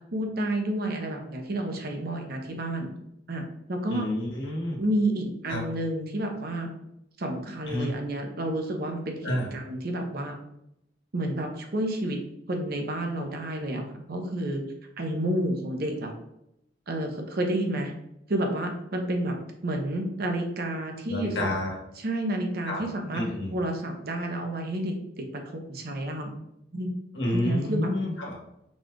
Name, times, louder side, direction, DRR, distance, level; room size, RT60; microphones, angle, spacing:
voice 1, 0.1-2.9 3.3-3.4 3.7-4.1 4.8-6.7 7.2-10.4 11.1-12.2 12.5-14.6 15.0-16.1 16.9-17.9 18.3-19.4 19.6-21.5 22.0-23.2 23.5-26.3 26.7-26.9 27.3-27.9, right 1 dB, 55° right, 3 dB, 0.8 m, -30 dB
voice 2, 3.9-4.8 5.5-5.6 7.7-7.9 9.2-9.5 21.1-21.7 22.7-22.8 23.1-23.5 27.1-28.3, left 1 dB, 65° left, -1 dB, 1.4 m, -29 dB
4.2 x 2.4 x 4.5 m, 0.80 s
head